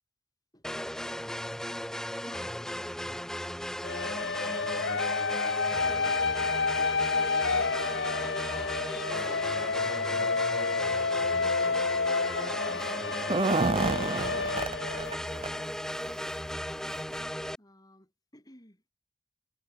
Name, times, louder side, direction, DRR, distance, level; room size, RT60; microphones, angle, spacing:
sound 1, 0.6-17.6, equal, 5° left, 1.5 m, -36 dB
voice 1, 2.2-3.0 3.4-3.9 5.8-6.3 6.8-11.9 12.6-13.4 17.6-18.8, left 2 dB, 20° left, 6.4 m, -55 dB
sound 2, 3.8-15.6, left 4 dB, 80° left, 1.3 m, -30 dB
sound 3, 13.1-15.2 15.4-15.5 16.0-16.1 17.0-17.1 17.5-17.6, right 3 dB, 30° right, 0.5 m, -29 dB
head